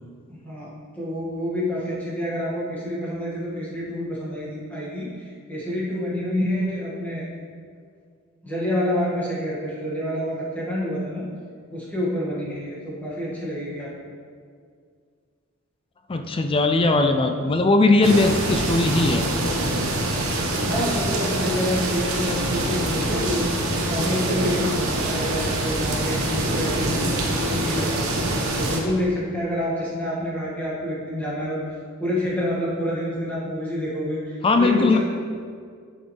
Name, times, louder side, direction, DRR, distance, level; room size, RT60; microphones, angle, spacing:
voice 1, 0.4-7.3 8.4-11.2 11.7-13.9 20.6-23.5 23.9-27.1 27.5-28.1 28.6-31.6 32.0-35.0, equal, 10° left, -8 dB, 2.1 m, -28 dB
voice 2, 16.1-19.2 34.4-35.0, left 3 dB, 25° left, 6 dB, 0.4 m, -19 dB
sound 1, 18.0-28.8, right 1 dB, 75° right, 1.2 m, -25 dB
9.7 x 6.4 x 3.4 m, 2.1 s
head